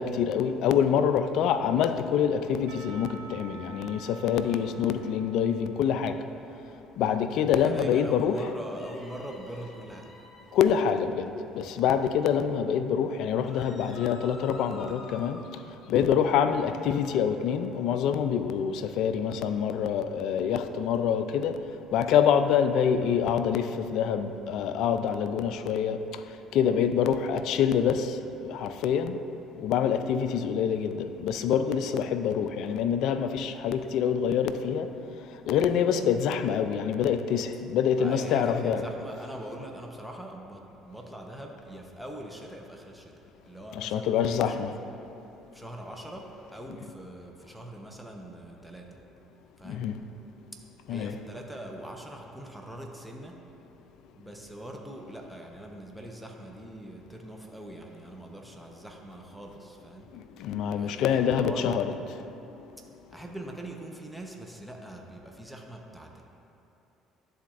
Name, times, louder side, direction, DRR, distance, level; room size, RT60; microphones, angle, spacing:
voice 1, 0.0-6.2 7.0-8.4 10.5-15.4 15.9-21.6 21.9-26.0 26.5-29.2 29.6-34.9 35.5-38.8 43.7-44.7 49.6-50.0 50.9-51.2 60.1-61.9, left 8 dB, 70° left, 10 dB, 0.3 m, -26 dB
Percussion / Church bell, 2.7-7.1, right 5 dB, 80° right, 0.7 m, -49 dB
voice 2, 7.6-10.1 38.0-43.1 43.4-44.6 45.5-49.0 49.6-49.9 50.9-53.4 54.1-60.1 60.7-61.8 63.1-66.2, right 1 dB, 5° right, 0 dB, 0.8 m, -42 dB
sound 1, 8.7-10.5 13.4-15.5, left 2 dB, 40° left, 1.2 m, -49 dB
11.0 x 4.1 x 2.5 m, 2.9 s
hypercardioid pair, 65°, 0 cm